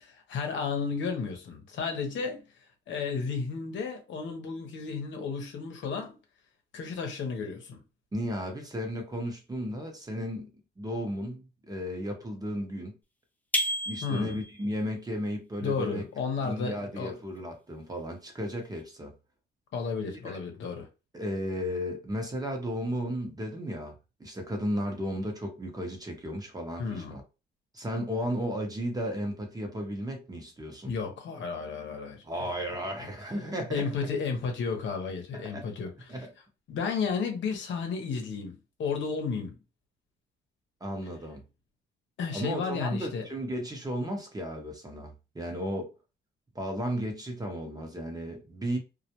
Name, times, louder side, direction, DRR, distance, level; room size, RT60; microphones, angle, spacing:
voice 1, 0.1-2.4 2.9-6.1 6.7-7.8 14.0-14.4 15.6-17.1 19.7-20.9 26.8-27.2 30.9-32.2 33.0-33.1 33.7-36.1 36.7-39.6 42.2-43.2, left 5 dB, 70° left, 0.8 m, -33 dB
voice 2, 8.1-12.9 13.9-16.0 16.4-19.1 20.2-20.4 21.1-27.2 27.7-30.9 32.2-33.9 35.3-35.7 36.1-36.3 40.8-41.4 42.3-45.9 46.5-48.8, equal, 20° right, 0.8 m, -34 dB
sound 1, 13.5-14.6, equal, 10° left, 0.4 m, -30 dB
2.3 x 2.1 x 2.8 m
cardioid pair, 90°, 20 cm